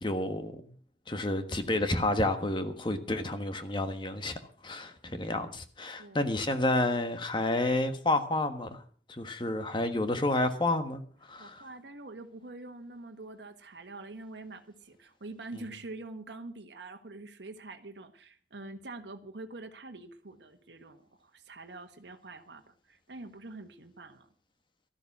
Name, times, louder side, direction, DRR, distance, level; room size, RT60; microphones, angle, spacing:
voice 1, 0.0-0.7 1.1-4.4 4.6-8.8 9.1-11.0 11.3-11.7, left 2 dB, 25° left, 1.4 m, -30 dB
voice 2, 11.4-24.3, right 2 dB, 80° right, 1.4 m, -45 dB
13.0 x 12.0 x 6.0 m
head